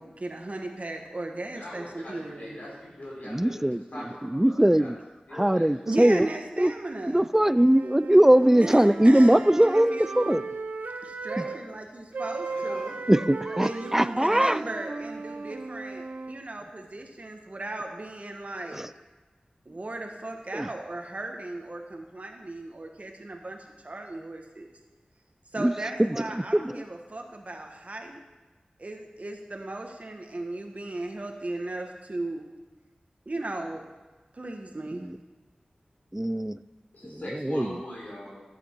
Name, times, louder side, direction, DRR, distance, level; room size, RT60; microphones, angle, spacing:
voice 1, 0.0-2.8 5.9-7.3 8.6-10.2 11.0-13.0 13.6-18.8 19.7-24.7 25.5-28.2 28.8-32.5 33.3-33.8 34.3-35.1, right 2 dB, 55° right, 3 dB, 1.2 m, -36 dB
voice 2, 1.5-5.0 5.3-5.7 11.3-11.5 12.5-12.8 36.9-38.4, left 1 dB, 75° left, -5 dB, 4.1 m, -41 dB
voice 3, 3.3-3.8 4.3-4.9 5.3-6.3 6.6-6.7 7.1-10.4 11.4-11.5 13.1-14.6 18.8-18.9 20.5-20.7 25.6-25.7 26.0-26.1 26.5-26.7 36.1-36.6 37.5-37.7, right 1 dB, 15° right, 16 dB, 0.3 m, -20 dB
sound 1, 7.5-11.6 12.1-16.4, right 3 dB, 85° right, 0.8 m, -36 dB
14.0 x 7.9 x 4.5 m, 1.2 s
wide cardioid pair, 45°, 3 cm